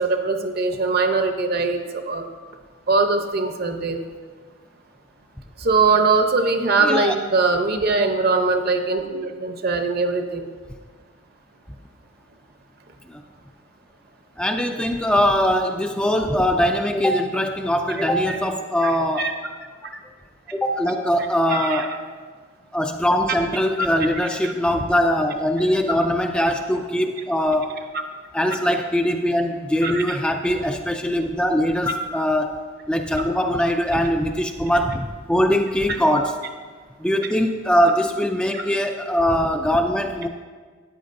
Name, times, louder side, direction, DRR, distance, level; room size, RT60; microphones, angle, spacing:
voice 1, 0.0-2.2 2.9-4.0 5.6-10.4 18.3-18.4 18.8-18.9 19.2-19.3 21.5-21.8 23.8-23.9 24.4-24.5 29.8-30.2 31.9-32.0 38.5-38.6, right 3 dB, 50° right, 6 dB, 0.8 m, -21 dB
voice 2, 6.8-7.2 13.1-13.2 14.4-19.4 20.5-22.0 22.7-27.7 28.3-32.6 32.9-36.3 37.0-40.3, equal, 5° left, 5 dB, 0.3 m, -21 dB
13.5 x 9.5 x 2.6 m, 1.5 s
head